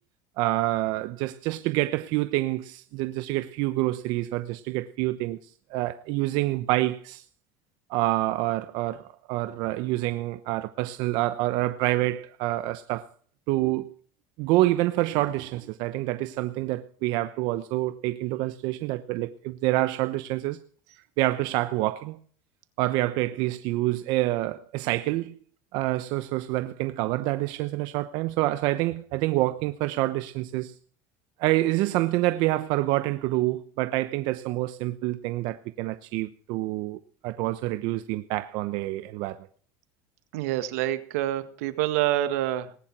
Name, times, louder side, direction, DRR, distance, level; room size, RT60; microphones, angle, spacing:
voice 1, 0.4-5.4 5.7-7.2 7.9-13.1 13.5-13.9 14.4-20.6 21.2-22.2 22.8-25.3 25.7-30.7 31.4-39.5, right 17 dB, 65° right, 0.9 m, -27 dB
voice 2, 40.3-42.8, right 13 dB, 85° right, 1.7 m, -27 dB
19.5 x 10.5 x 6.1 m
supercardioid pair, 135°, 8 cm